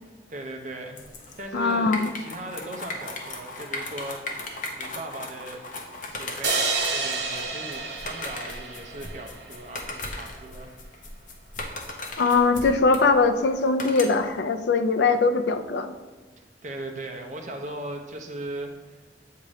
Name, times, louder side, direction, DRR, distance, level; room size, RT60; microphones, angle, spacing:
voice 1, 0.3-1.0 1.4-5.6 6.1-10.7 16.6-19.0, right 1 dB, 45° right, 3 dB, 0.7 m, -38 dB
sound 1, 1.0-14.4, left 2 dB, 45° left, 0.8 m, -37 dB
voice 2, 1.5-2.1 12.2-15.9, left 4 dB, 75° left, 9 dB, 0.4 m, -21 dB
sound 2, 6.4-9.7, right 3 dB, 80° right, 1.1 m, -29 dB
7.4 x 2.8 x 4.8 m, 1.3 s
head